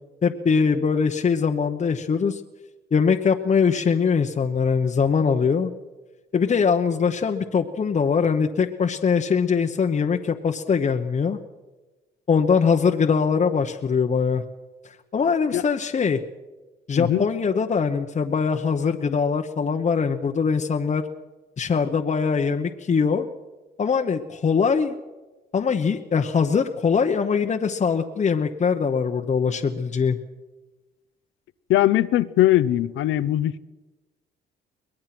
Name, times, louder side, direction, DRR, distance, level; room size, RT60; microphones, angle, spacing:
voice 1, 0.2-2.4 2.9-5.7 6.3-11.4 12.3-14.4 15.1-16.2 16.9-21.0 21.6-23.3 23.8-24.9 25.5-30.2, left 5 dB, 35° left, 1.0 m, -22 dB
voice 2, 16.9-17.3 31.7-33.6, left 14 dB, 85° left, 0.8 m, -20 dB
23.0 x 19.0 x 6.0 m
cardioid pair, 90°, 20 cm